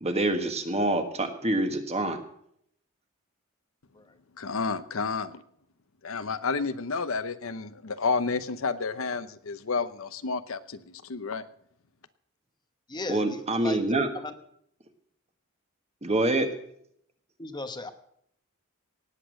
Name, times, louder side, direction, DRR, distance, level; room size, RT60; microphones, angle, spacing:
voice 1, 0.0-2.2 13.1-14.1 16.0-16.5, right 2 dB, 30° right, 6 dB, 1.5 m, -26 dB
voice 2, 4.4-5.4 6.0-11.4, left 4 dB, 70° left, 12 dB, 0.8 m, -30 dB
voice 3, 12.9-13.8 14.1-14.3 17.4-17.9, left 2 dB, 20° left, 9 dB, 1.0 m, -37 dB
18.0 x 8.4 x 6.4 m, 0.69 s
head